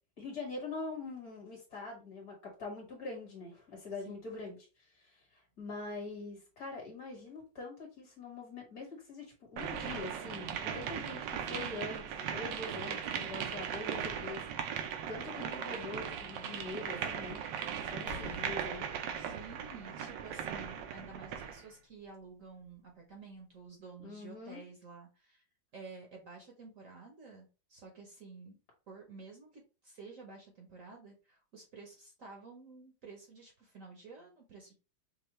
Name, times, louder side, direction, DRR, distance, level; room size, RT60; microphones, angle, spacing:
voice 1, 0.2-4.6 5.6-17.4 17.8-18.9 24.0-24.6, left 3 dB, 50° left, 0 dB, 2.1 m, -44 dB
sound 1, 9.6-21.6, right 8 dB, 80° right, 1.3 m, -38 dB
Percussion, 18.1-22.8, left 1 dB, 75° left, 1.6 m, -52 dB
voice 2, 19.1-25.4 25.7-28.6 28.9-34.7, right 4 dB, 55° right, 1 dB, 1.1 m, -51 dB
5.5 x 2.3 x 3.0 m, 0.31 s
omnidirectional pair, 2.0 m